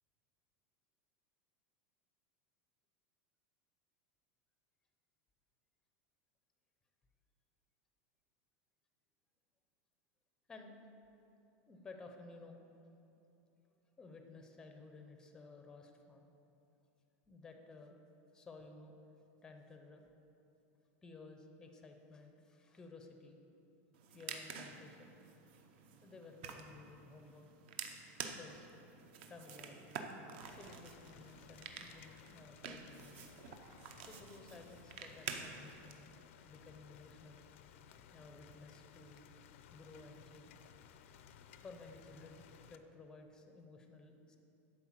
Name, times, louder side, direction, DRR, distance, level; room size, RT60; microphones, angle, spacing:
voice 1, 11.7-12.6 14.0-16.3 17.3-17.9 18.3-18.9 19.4-20.0 21.0-23.4 24.1-25.1 26.0-27.4 28.2-28.7 29.3-30.1 30.4-33.2 34.0-36.2 36.5-37.4 38.1-39.3 39.7-40.5 41.6-44.4, left 3 dB, 10° left, 4 dB, 0.6 m, -55 dB
sound 1, 23.9-35.9, right 6 dB, 50° right, 0.7 m, -49 dB
Rain, 30.4-42.8, left 8 dB, 60° left, 0.5 m, -60 dB
11.0 x 4.5 x 7.3 m, 2.9 s
supercardioid pair, 175°, 8 cm